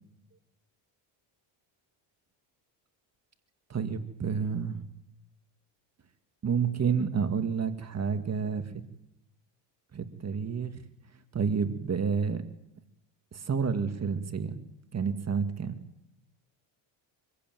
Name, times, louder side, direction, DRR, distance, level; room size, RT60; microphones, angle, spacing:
voice 1, 3.7-4.8 6.4-8.8 9.9-10.7 11.3-12.4 13.3-14.6 14.9-15.8, right 6 dB, 30° right, 8 dB, 2.0 m, -29 dB
25.5 x 15.5 x 9.3 m, 0.81 s
cardioid pair, 105°, 49 cm